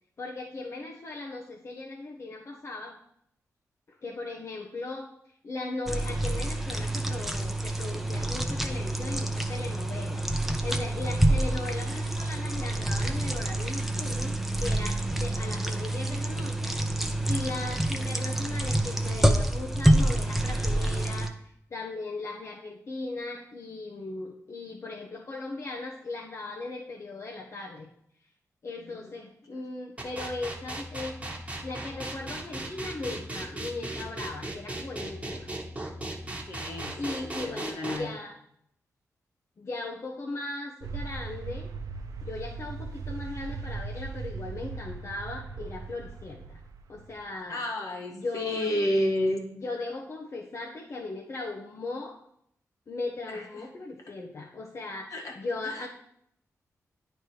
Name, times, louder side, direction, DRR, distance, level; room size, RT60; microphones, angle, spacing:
voice 1, 0.2-3.0 4.0-5.1 5.4-16.7 17.2-21.3 21.7-27.9 28.6-31.3 31.6-35.5 37.0-38.4 39.6-41.7 42.2-46.6 46.9-47.6 48.1-48.7 49.6-52.2 52.9-55.9, left 2 dB, 50° left, -1 dB, 0.8 m, -38 dB
sound 1, 5.9-21.3, right 1 dB, 5° right, 0.7 m, -27 dB
voice 2, 28.8-29.1 29.5-29.6 36.5-38.1 47.5-49.4 53.3-53.7 55.1-55.4 55.6-55.9, left 1 dB, 65° left, 0 dB, 1.6 m, -31 dB
sound 2, 30.0-38.0, right 2 dB, 20° right, 1.1 m, -36 dB
sound 3, 40.8-47.3, right 4 dB, 80° right, 0.6 m, -38 dB
9.4 x 3.3 x 4.5 m, 0.70 s
cardioid pair, 70°, 6 cm